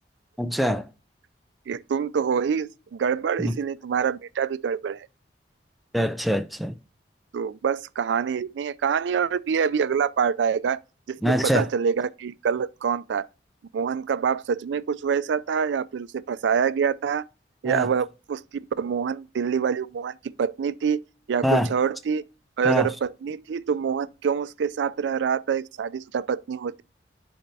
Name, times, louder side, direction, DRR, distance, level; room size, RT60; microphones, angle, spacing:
voice 1, 0.4-0.9 3.4-3.6 5.9-6.8 11.2-11.7 17.6-17.9 21.4-21.7 22.6-22.9, equal, ahead, 0.4 m, -24 dB
voice 2, 1.7-5.1 7.3-10.8 11.1-13.3 13.7-17.3 17.6-18.4 18.8-21.0 21.3-22.2 22.6-26.8, right 7 dB, 85° right, 0.4 m, -26 dB
10.5 x 4.3 x 2.7 m
head